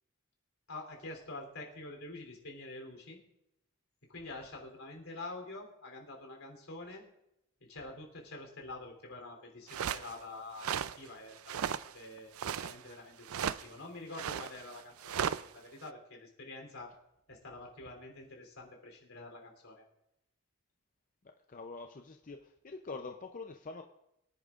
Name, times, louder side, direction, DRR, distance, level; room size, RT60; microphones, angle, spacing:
voice 1, 0.7-3.2 4.1-7.0 7.7-15.2 15.5-16.9 17.3-19.8, left 2 dB, 80° left, 1 dB, 3.3 m, -47 dB
sound 1, 9.7-10.1 10.6-11.0 11.4-11.9 12.2-12.8 13.3-13.6 14.1-15.4, right 8 dB, 85° right, 0.4 m, -35 dB
voice 2, 21.5-23.8, left 3 dB, 40° left, 5 dB, 0.6 m, -45 dB
24.0 x 10.5 x 2.5 m, 0.84 s
head